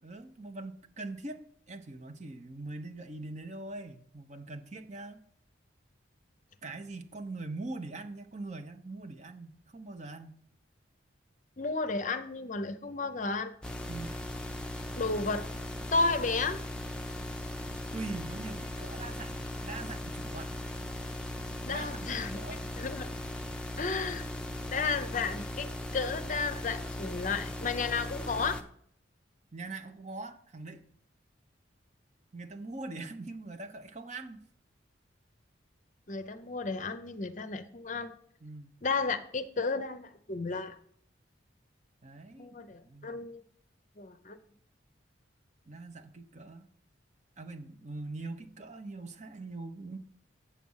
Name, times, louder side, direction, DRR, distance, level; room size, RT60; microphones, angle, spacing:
voice 1, 0.0-5.2 6.6-10.4 13.9-14.2 17.9-20.6 21.7-21.9 22.3-22.7 29.5-30.9 32.3-34.4 38.4-38.8 42.0-42.6 42.8-43.2 45.6-46.7 47.4-50.0, right 2 dB, 35° right, 6 dB, 0.8 m, -42 dB
voice 2, 11.6-13.5 15.0-15.5 15.9-16.6 21.6-22.4 22.8-23.1 23.8-24.2 24.6-25.7 25.9-28.6 36.1-38.1 38.8-40.8 42.4-43.4 44.0-44.4, left 4 dB, 40° left, 10 dB, 0.6 m, -33 dB
sound 1, 13.6-28.6, left 1 dB, 5° left, 0.7 m, -38 dB
8.5 x 7.4 x 5.6 m, 0.64 s
head